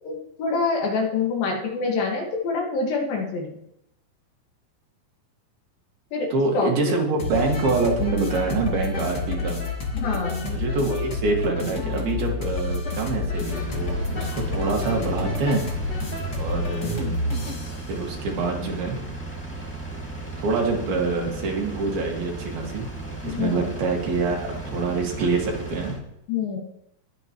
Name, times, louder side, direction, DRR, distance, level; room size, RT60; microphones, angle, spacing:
voice 1, 0.0-3.6 6.1-6.9 9.9-10.5 23.2-23.6 26.3-26.6, left 4 dB, 70° left, 0 dB, 3.5 m, -26 dB
voice 2, 6.3-9.6 10.4-15.6 16.4-17.2 17.9-19.0 20.4-22.9 23.2-25.9, right 3 dB, 75° right, 0 dB, 3.9 m, -26 dB
sound 1, 7.2-17.8, left 3 dB, 35° left, 1.9 m, -29 dB
Engine, 13.3-26.0, right 2 dB, 5° left, 0.9 m, -35 dB
21.0 x 9.0 x 3.1 m, 0.80 s
omnidirectional pair, 4.4 m